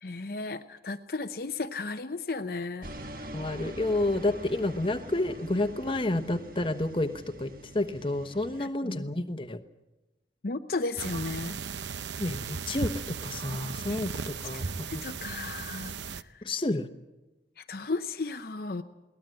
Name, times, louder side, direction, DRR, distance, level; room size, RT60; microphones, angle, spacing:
voice 1, 0.0-2.9 8.6-9.1 10.4-11.6 13.9-14.0 14.5-16.5 17.6-18.8, left 3 dB, 55° left, 7 dB, 0.7 m, -35 dB
sound 1, 2.8-8.7, right 1 dB, 50° right, 1.4 m, -44 dB
voice 2, 3.3-9.6 12.2-14.6 16.4-16.9, left 2 dB, 30° left, 8 dB, 1.1 m, -30 dB
sound 2, 11.0-16.2, right 5 dB, 80° right, 0.7 m, -36 dB
22.5 x 18.0 x 7.7 m, 1.0 s
head